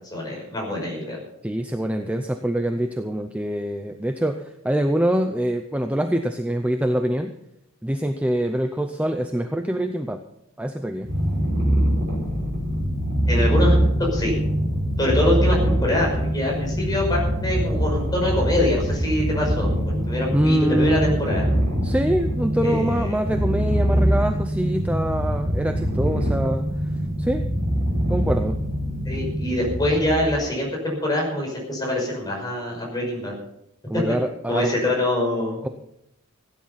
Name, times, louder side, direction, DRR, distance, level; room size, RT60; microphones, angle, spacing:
voice 1, 0.1-1.2 13.3-13.8 14.1-14.3 15.0-21.4 22.6-23.2 29.0-33.3 34.5-35.6, left 1 dB, 20° left, -2 dB, 5.6 m, -24 dB
voice 2, 1.4-7.3 7.8-10.2 10.6-11.1 20.3-21.1 21.8-26.7 27.2-27.4 28.1-28.6 33.9-34.9, right 1 dB, 5° right, 6 dB, 0.6 m, -24 dB
Purr, 11.0-30.4, equal, 40° right, 5.5 m, -23 dB
16.5 x 10.0 x 5.8 m, 0.79 s
head